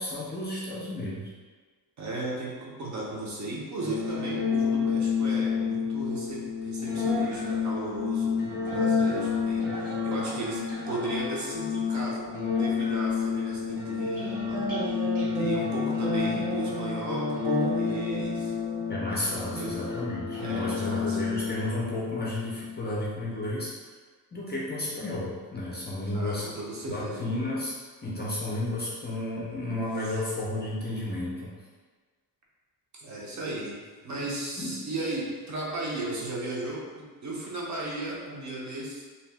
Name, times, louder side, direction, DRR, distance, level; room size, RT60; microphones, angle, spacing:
voice 1, 0.0-1.3 18.9-23.7 24.3-26.5 26.8-27.7 28.0-31.5 34.6-34.7, left 1 dB, 25° left, -6 dB, 0.5 m, -32 dB
voice 2, 2.0-12.3 12.6-18.5 19.4-19.8 20.4-21.2 26.1-27.3 30.0-30.2 33.0-33.8 34.0-39.0, right 2 dB, 45° right, -4 dB, 0.6 m, -36 dB
sound 1, 3.8-22.8, left 5 dB, 85° right, 1.3 m, -29 dB
2.7 x 2.1 x 3.3 m, 1.4 s
wide cardioid pair, 165°, 41 cm